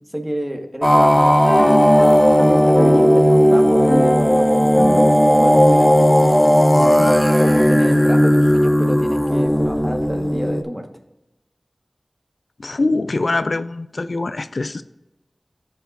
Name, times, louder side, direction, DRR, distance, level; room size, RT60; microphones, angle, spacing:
voice 1, 0.1-1.4 2.4-5.1 5.4-10.8, equal, 15° right, 4 dB, 1.2 m, -28 dB
sound 1, 0.8-10.6, equal, 10° left, 0.5 m, -14 dB
sound 2, 1.4-7.0, equal, 25° left, 1.5 m, -25 dB
voice 2, 12.6-14.8, left 2 dB, 75° left, 13 dB, 0.3 m, -23 dB
15.0 x 5.7 x 2.4 m, 0.98 s
wide cardioid pair, 65°, 0 cm